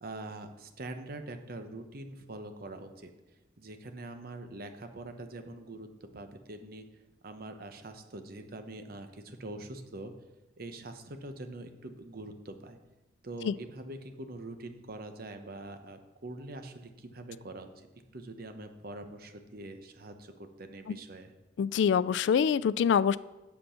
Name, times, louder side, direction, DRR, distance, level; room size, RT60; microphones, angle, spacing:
voice 1, 0.0-3.1 3.6-6.9 7.2-10.1 10.6-12.8 13.2-17.7 18.1-21.3, right 2 dB, 55° right, 7 dB, 0.9 m, -44 dB
voice 2, 21.6-23.2, left 7 dB, 75° left, 17 dB, 0.3 m, -25 dB
7.9 x 6.8 x 5.7 m, 1.1 s
head